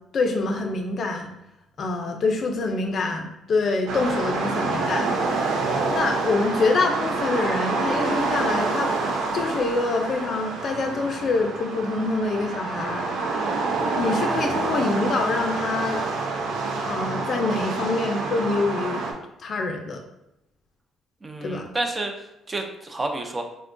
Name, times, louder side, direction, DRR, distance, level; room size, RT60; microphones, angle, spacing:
voice 1, 0.1-1.3 1.8-5.1 5.9-8.9 9.3-13.1 13.9-16.0 16.9-19.1 19.4-20.0 21.4-21.7, left 3 dB, 50° left, 4 dB, 0.4 m, -25 dB
sound 1, 3.9-19.1, right 3 dB, 85° right, 0.4 m, -27 dB
voice 2, 21.2-23.4, right 2 dB, 25° right, 4 dB, 0.4 m, -30 dB
3.6 x 2.1 x 2.5 m, 0.84 s
cardioid pair, 100°, 0 cm